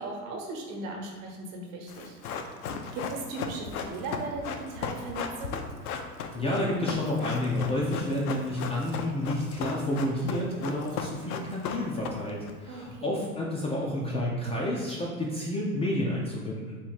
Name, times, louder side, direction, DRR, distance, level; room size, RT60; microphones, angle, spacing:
voice 1, 0.0-2.5 2.9-5.6 12.7-13.1, right 2 dB, 60° right, 1 dB, 1.0 m, -38 dB
Run, 1.9-12.5 12.8-12.9, left 6 dB, 75° left, 0.6 m, -36 dB
voice 2, 6.3-16.8, left 1 dB, 15° left, -4 dB, 0.3 m, -30 dB
3.4 x 2.9 x 4.6 m, 1.4 s
hypercardioid pair, 85°, 45 cm